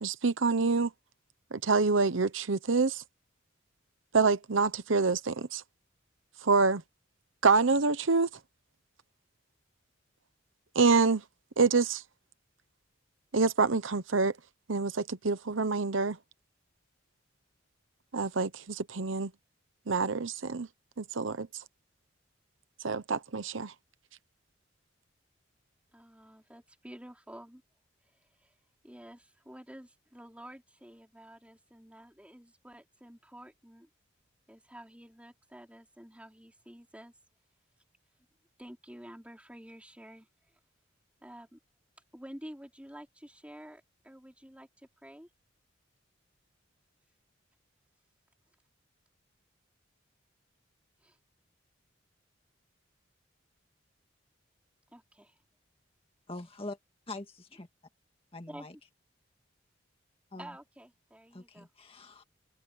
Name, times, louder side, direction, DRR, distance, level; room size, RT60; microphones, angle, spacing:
voice 1, 0.0-0.9 1.5-3.0 4.1-5.6 6.4-6.8 7.4-8.3 10.7-11.2 11.6-12.0 13.3-14.3 14.7-16.2 18.1-19.3 19.9-20.7 21.0-21.5 22.8-23.7, right 4 dB, 75° right, 0.9 m, -26 dB
voice 2, 25.9-27.6 28.4-28.5 28.8-33.9 34.5-37.1 38.6-40.3 41.2-41.6 42.1-45.3 51.0-51.2 54.9-55.3 58.5-58.7 60.4-61.7, equal, 5° right, 4.8 m, -50 dB
voice 3, 56.3-56.8 57.1-57.7 58.3-58.8 60.3-60.6 61.3-62.2, left 2 dB, 30° left, 1.9 m, -43 dB
head